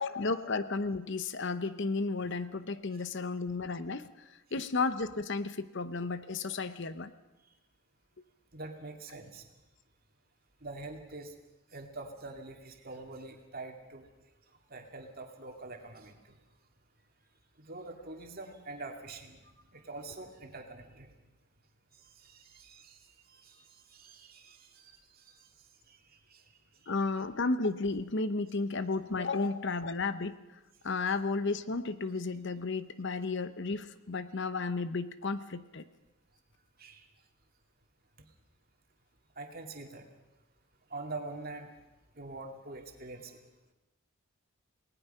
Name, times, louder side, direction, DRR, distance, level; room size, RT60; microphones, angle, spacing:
voice 1, 0.0-7.1 26.9-30.4 30.8-35.8, left 3 dB, 55° left, 13 dB, 0.8 m, -33 dB
voice 2, 8.5-9.4 10.6-11.3 11.7-14.1 14.7-16.4 17.6-21.1 21.9-25.5 25.9-26.0 26.3-26.4 26.8-26.9 36.8-37.1 39.4-40.1 40.9-41.7 42.2-43.4, right 2 dB, 40° right, 3 dB, 2.5 m, -45 dB
28.5 x 19.0 x 5.6 m, 1.0 s
head